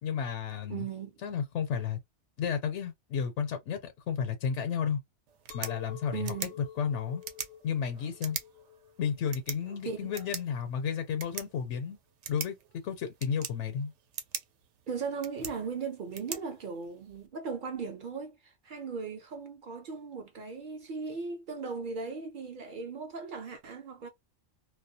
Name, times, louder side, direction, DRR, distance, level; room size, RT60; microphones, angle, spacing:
voice 1, 0.0-0.9 1.2-2.0 2.4-5.0 5.5-6.5 6.8-7.2 7.6-8.4 9.0-12.0 12.3-12.6 12.8-13.9, left 7 dB, 80° left, 0.9 m, -32 dB
voice 2, 0.7-1.1 6.1-6.5 9.8-10.1 14.9-24.1, right 5 dB, 55° right, 0.6 m, -38 dB
sound 1, 5.3-17.3, right 8 dB, 80° right, 0.9 m, -44 dB
Chink clink, 5.5-10.7, left 10 dB, 60° left, 0.6 m, -49 dB
2.3 x 2.1 x 2.6 m
omnidirectional pair, 1.2 m